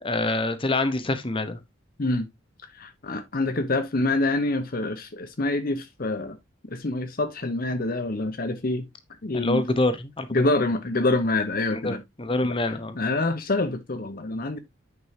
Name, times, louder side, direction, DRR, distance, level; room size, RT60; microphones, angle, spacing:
voice 1, 0.0-1.6 9.3-10.5 11.7-13.0, left 2 dB, 30° left, 1.0 m, -26 dB
voice 2, 2.7-6.4 6.7-8.9 9.2-9.6 10.3-12.0 12.4-12.6 13.0-14.6, left 2 dB, 50° left, 0.8 m, -26 dB
9.5 x 5.4 x 2.8 m
head